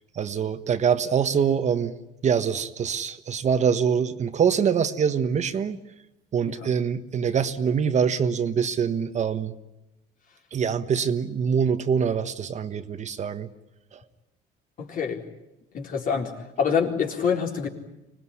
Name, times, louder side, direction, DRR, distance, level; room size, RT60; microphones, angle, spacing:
voice 1, 0.1-1.9 2.2-5.8 6.3-9.5 10.5-13.5 13.9-14.0, right 7 dB, 45° right, 9 dB, 1.4 m, -24 dB
voice 2, 14.8-15.2 15.7-16.3 16.6-17.7, left 6 dB, 55° left, 2 dB, 4.1 m, -26 dB
25.0 x 19.5 x 9.9 m, 0.95 s
cardioid pair, 110°, 17 cm